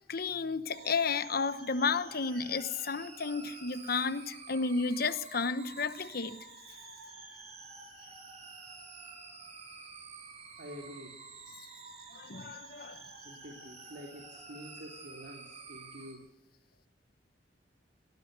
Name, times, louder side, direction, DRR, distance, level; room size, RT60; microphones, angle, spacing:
voice 1, 0.1-6.4 12.1-13.0, left 4 dB, 60° left, 1.1 m, -32 dB
sound 1, 0.7-16.1, right 4 dB, 40° right, 7.5 m, -50 dB
voice 2, 10.6-11.2 13.2-16.3, equal, 70° right, 3.4 m, -48 dB
23.0 x 18.5 x 6.8 m
head